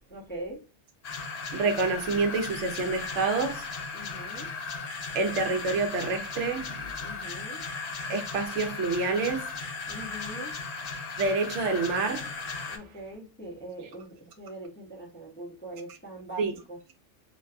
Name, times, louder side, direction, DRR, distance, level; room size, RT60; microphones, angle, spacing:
voice 1, 0.1-0.6 3.9-4.5 7.0-7.7 9.9-10.6 12.7-16.8, right 1 dB, 10° left, 0.6 m, -42 dB
sound 1, 1.0-12.8, left 4 dB, 70° left, 0.3 m, -36 dB
voice 2, 1.5-3.7 5.1-6.9 8.1-9.5 11.2-12.3 12.6-12.7 16.4-16.5, right 4 dB, 80° right, 0.9 m, -28 dB
2.5 x 2.3 x 2.4 m
omnidirectional pair, 1.2 m